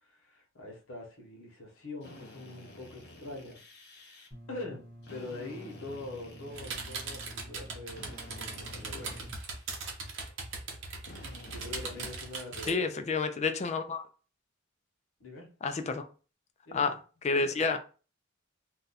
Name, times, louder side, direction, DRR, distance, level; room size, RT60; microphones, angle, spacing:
voice 1, 0.0-3.6 4.5-9.2 11.4-13.1 15.2-15.5 16.7-16.9, left 2 dB, 85° left, 1.1 m, -44 dB
Drill, 2.0-4.3 5.0-7.3 7.9-9.8 11.0-12.4, left 1 dB, 55° left, 0.8 m, -51 dB
sound 1, 4.3-9.3, equal, 15° left, 1.1 m, -50 dB
sound 2, 6.5-12.7, right 4 dB, 65° right, 0.8 m, -39 dB
voice 2, 12.7-14.0 15.6-16.1 16.7-17.8, left 4 dB, 35° left, 0.4 m, -30 dB
2.6 x 2.2 x 4.0 m
head